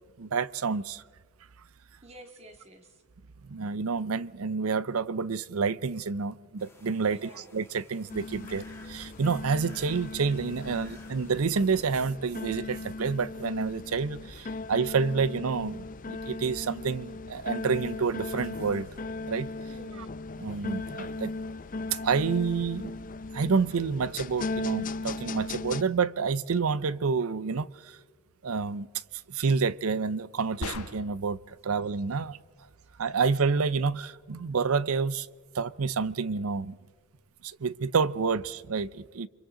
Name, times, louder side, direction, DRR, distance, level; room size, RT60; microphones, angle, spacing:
voice 1, 0.2-1.0 3.5-18.9 19.3-19.5 20.4-21.3 21.9-22.9 23.3-28.0 28.4-28.9 29.3-32.4 33.0-35.3 35.5-36.8 37.4-39.3, right 5 dB, 70° right, 0.6 m, -29 dB
voice 2, 2.0-3.0 7.1-7.5 10.9-11.0 19.7-20.2, right 1 dB, 30° right, 2.1 m, -51 dB
sound 1, 6.6-12.0, left 2 dB, 10° left, 1.7 m, -54 dB
sound 2, 8.1-25.8, left 3 dB, 40° left, 0.6 m, -38 dB
sound 3, 30.6-31.3, left 3 dB, 85° left, 1.3 m, -37 dB
29.5 x 24.5 x 3.8 m
head